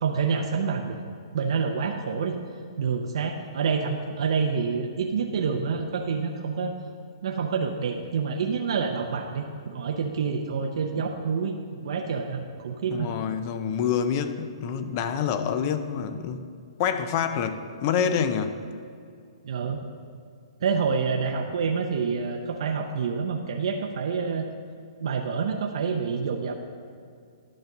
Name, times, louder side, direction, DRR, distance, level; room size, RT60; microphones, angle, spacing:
voice 1, 0.0-1.0 1.3-2.4 2.8-6.7 7.2-11.5 11.8-13.1 19.4-19.8 20.6-24.4 25.0-26.5, right 5 dB, 60° right, 3 dB, 0.6 m, -27 dB
voice 2, 12.9-16.4 16.8-18.5, left 7 dB, 30° left, 10 dB, 0.5 m, -27 dB
11.0 x 5.1 x 6.1 m, 2.3 s
hypercardioid pair, 165°, 3 cm